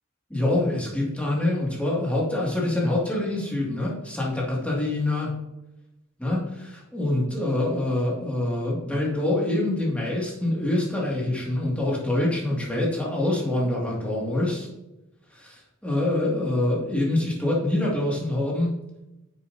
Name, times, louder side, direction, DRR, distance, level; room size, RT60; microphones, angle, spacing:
voice 1, 0.3-5.3 6.2-14.7 15.3-18.7, left 1 dB, 5° left, -4 dB, 2.3 m, -25 dB
9.5 x 7.2 x 2.8 m, 0.95 s
head